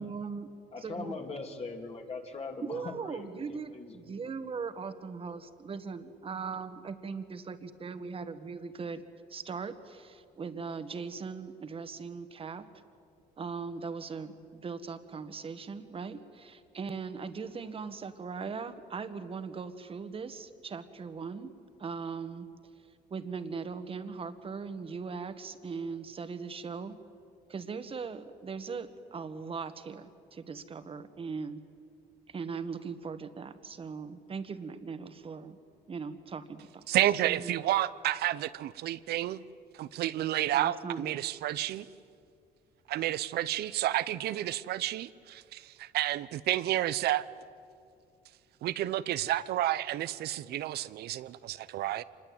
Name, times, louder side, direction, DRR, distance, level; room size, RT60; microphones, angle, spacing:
voice 1, 0.0-0.5 0.8-1.2 2.6-9.0 9.3-12.6 13.4-21.5 21.8-22.5 23.1-26.9 27.5-31.6 32.3-35.6 35.9-36.8 37.3-37.5 40.5-41.1, right 5 dB, 35° right, 10 dB, 1.6 m, -39 dB
voice 2, 0.7-4.2, left 3 dB, 35° left, 3 dB, 2.9 m, -41 dB
voice 3, 36.9-39.4 39.7-41.9 42.9-47.3 48.6-52.0, right 13 dB, 70° right, 16 dB, 0.8 m, -30 dB
26.5 x 21.0 x 8.9 m, 2.4 s
cardioid pair, 110°, 17 cm